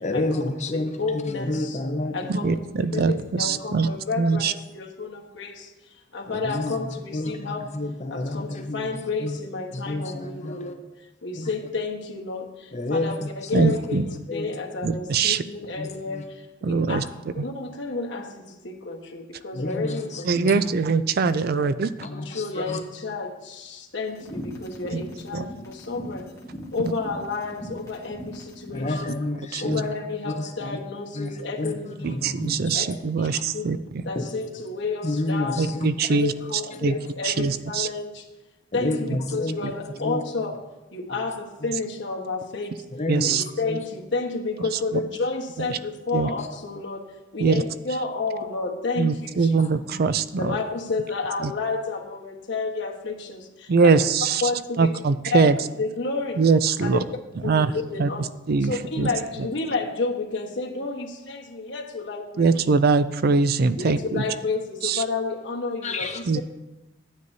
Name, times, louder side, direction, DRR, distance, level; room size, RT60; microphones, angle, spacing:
voice 1, 0.0-0.9 1.2-2.3 2.9-3.1 6.3-6.8 7.1-8.9 9.2-9.3 9.7-10.7 11.4-11.5 12.7-13.2 13.5-13.8 14.3-14.5 15.8-16.2 16.9-17.1 19.5-20.0 20.3-20.6 22.0-22.8 28.7-29.8 30.4-30.8 31.2-31.3 31.6-31.7 32.0-32.7 34.2-34.3 35.0-35.9 36.7-37.0 38.7-39.6 40.0-40.2 43.0-43.4 43.6-43.8 65.8-66.2, left 2 dB, 40° left, 5 dB, 0.9 m, -29 dB
voice 2, 0.7-1.8 2.1-5.7 6.1-7.7 8.1-10.8 11.2-17.0 17.3-20.5 21.5-21.6 22.1-26.3 26.7-29.2 29.6-32.3 32.7-32.8 33.2-33.3 33.5-33.7 34.0-35.7 36.1-38.2 38.7-42.8 43.2-49.6 50.4-53.9 54.4-54.9 55.3-56.4 56.8-57.0 57.4-58.2 58.6-62.5 63.8-66.4, left 3 dB, 70° left, 0 dB, 1.4 m, -31 dB
voice 3, 2.3-3.9 4.2-4.5 13.5-14.1 14.8-15.4 16.6-17.0 17.4-17.5 20.2-21.9 25.3-25.4 29.5-29.8 32.0-33.8 35.6-36.3 36.8-36.9 37.2-37.9 43.1-43.4 46.1-46.3 47.4-47.6 49.0-50.5 51.4-51.5 53.7-54.4 54.8-55.6 56.4-57.0 57.4-57.7 58.0-58.1 58.5-59.1 62.4-64.2 64.8-65.0 66.3-66.4, right 4 dB, 55° right, 13 dB, 0.4 m, -22 dB
sound 1, 24.1-28.9, equal, 20° left, 1.5 m, -39 dB
13.0 x 9.4 x 2.8 m, 1.0 s
head